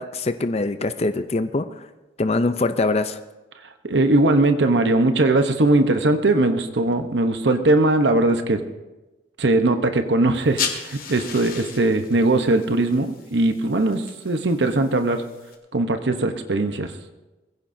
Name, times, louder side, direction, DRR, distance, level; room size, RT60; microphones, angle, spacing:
voice 1, 0.0-1.8 2.2-3.2, left 2 dB, 35° left, 10 dB, 0.5 m, -23 dB
voice 2, 3.8-8.6 9.4-15.2 15.7-16.9, right 2 dB, 90° right, 7 dB, 0.9 m, -20 dB
sound 1, 10.3-15.5, left 6 dB, 55° left, 1.9 m, -35 dB
22.0 x 15.5 x 2.7 m, 1.1 s
head